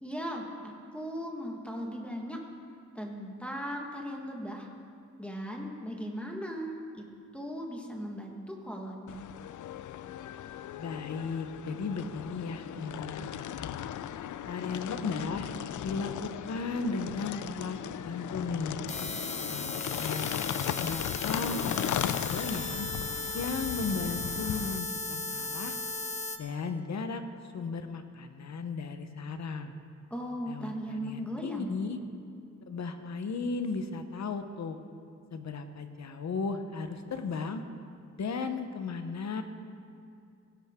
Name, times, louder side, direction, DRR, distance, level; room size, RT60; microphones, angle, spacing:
voice 1, 0.0-2.4 2.9-4.7 5.2-7.0 7.3-9.2 30.1-31.8, equal, 5° left, 0 dB, 1.5 m, -38 dB
sound 1, 9.1-24.8, left 11 dB, 85° left, 0.5 m, -37 dB
voice 2, 10.8-13.7 14.4-15.5 15.8-18.8 19.5-20.3 20.8-22.9 23.3-25.8 26.4-27.2 27.5-29.7 30.5-32.0 32.7-34.8 35.3-37.6 38.2-39.4, left 4 dB, 65° left, 8 dB, 1.0 m, -35 dB
sound 2, 18.9-26.4, left 3 dB, 25° left, 0.9 m, -36 dB
16.5 x 16.5 x 3.7 m, 2.4 s
wide cardioid pair, 130°, 30 cm